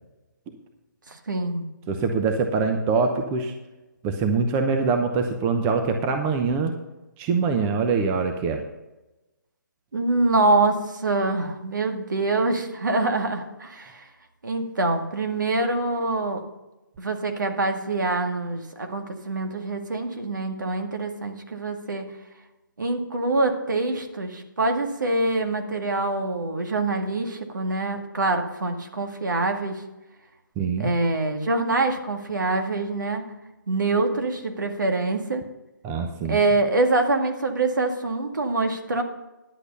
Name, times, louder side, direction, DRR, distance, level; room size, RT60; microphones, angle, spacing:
voice 1, 1.1-1.7 9.9-14.1 14.4-16.4 17.0-22.0 22.8-29.8 30.8-33.3 33.7-35.4 36.3-39.0, right 2 dB, 70° right, 4 dB, 2.0 m, -25 dB
voice 2, 1.9-3.5 4.0-6.7 7.2-8.6 30.6-30.9 35.8-36.4, right 4 dB, 20° right, 5 dB, 0.8 m, -24 dB
11.0 x 8.2 x 5.5 m, 1.0 s
figure-of-eight pair, 145°, 11 cm